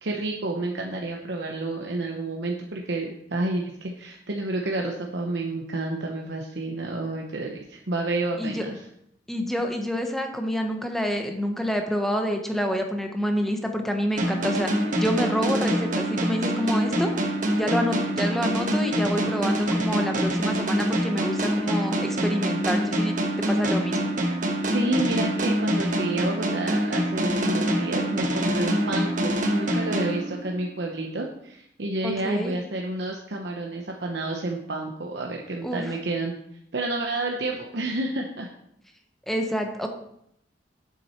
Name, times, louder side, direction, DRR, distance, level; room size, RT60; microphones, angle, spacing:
voice 1, 0.0-8.8 24.7-36.3 36.7-38.5, right 2 dB, 70° right, 1 dB, 0.9 m, -30 dB
voice 2, 9.3-14.7 15.0-17.1 17.5-23.1 23.5-24.1 32.0-32.5 35.6-35.8 39.3-39.9, equal, ahead, 4 dB, 1.0 m, -27 dB
sound 1, 14.2-30.8, equal, 45° right, 1.3 m, -25 dB
8.5 x 7.5 x 4.4 m, 0.74 s
head